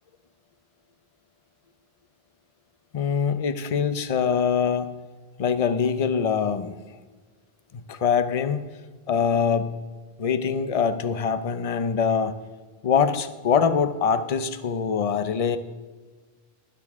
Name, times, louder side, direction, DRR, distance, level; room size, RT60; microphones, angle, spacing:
voice 1, 2.9-5.0 5.4-6.7 7.7-8.7 9.1-9.7 10.2-12.3 12.8-15.6, left 6 dB, 40° left, 11 dB, 0.6 m, -23 dB
20.5 x 7.0 x 3.6 m, 1.3 s
omnidirectional pair, 1.1 m